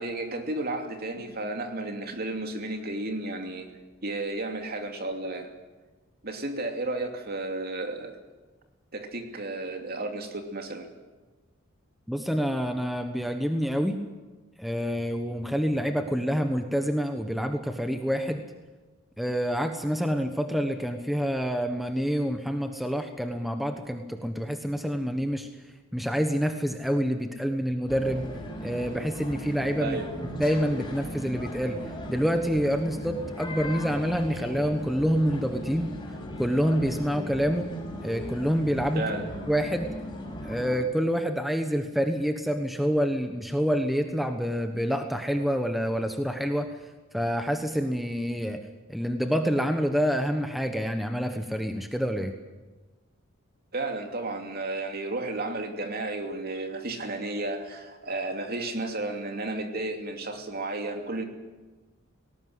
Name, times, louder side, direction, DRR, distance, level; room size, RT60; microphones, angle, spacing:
voice 1, 0.0-3.7 4.0-5.5 6.2-8.2 8.9-10.9 29.8-30.2 38.9-39.3 53.7-61.2, right 2 dB, 50° right, 4 dB, 2.8 m, -33 dB
voice 2, 12.1-14.0 14.6-18.4 19.2-25.5 25.9-28.3 28.6-30.0 30.4-31.8 32.1-35.9 36.4-37.7 38.0-39.1 39.5-39.9 40.4-46.7 47.1-48.6 48.9-52.3, equal, ahead, 6 dB, 1.2 m, -27 dB
sound 1, 27.9-40.8, equal, 20° left, 5.8 m, -37 dB
19.0 x 18.5 x 9.7 m, 1.2 s
head